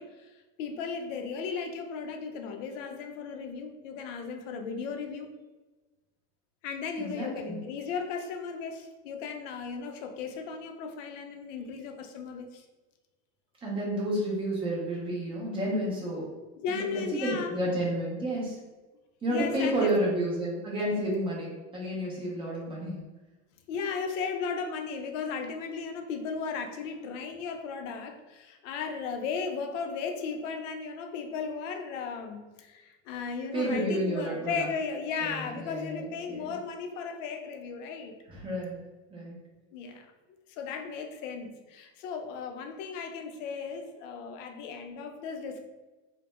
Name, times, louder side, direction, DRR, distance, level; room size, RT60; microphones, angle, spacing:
voice 1, 0.0-5.3 6.6-12.6 16.6-17.6 19.3-19.9 23.7-38.1 39.7-40.1 40.5-45.7, left 5 dB, 85° left, 5 dB, 0.5 m, -36 dB
voice 2, 7.0-7.6 13.6-16.3 16.8-18.6 19.2-23.0 33.5-34.7 35.2-36.5 38.3-38.8 39.1-39.4, right 1 dB, 15° right, -5 dB, 0.4 m, -31 dB
2.1 x 2.1 x 2.9 m, 1.2 s
supercardioid pair, 150°, 36 cm